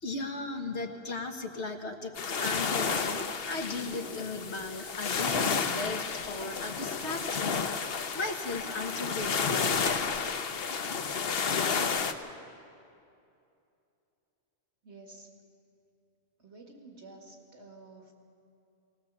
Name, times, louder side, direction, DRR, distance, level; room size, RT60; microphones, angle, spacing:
voice 1, 0.0-9.8, left 3 dB, 75° left, 4 dB, 1.7 m, -37 dB
sound 1, 2.2-12.1, left 5 dB, 60° left, 1.1 m, -31 dB
voice 2, 14.8-15.4 16.4-18.1, right 3 dB, 80° right, 2 dB, 2.4 m, -51 dB
19.5 x 19.0 x 7.4 m, 2.6 s
omnidirectional pair, 1.2 m